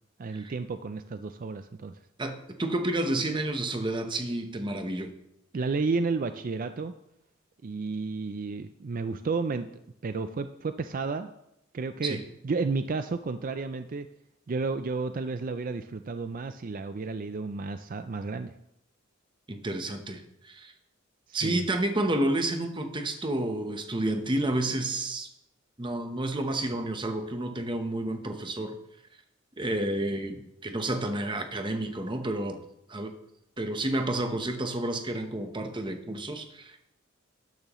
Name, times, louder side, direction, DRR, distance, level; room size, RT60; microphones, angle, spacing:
voice 1, 0.2-2.0 5.5-6.9 7.6-9.7 10.0-11.3 11.7-12.2 12.4-14.1 14.5-18.5 21.3-21.6, right 4 dB, 40° right, 10 dB, 0.4 m, -32 dB
voice 2, 2.2-5.1 12.0-12.2 19.5-20.7 21.3-25.3 25.8-28.8 29.6-32.6 32.9-33.1 33.6-36.8, right 1 dB, 25° right, 6 dB, 0.9 m, -30 dB
12.5 x 10.5 x 3.1 m, 0.83 s
head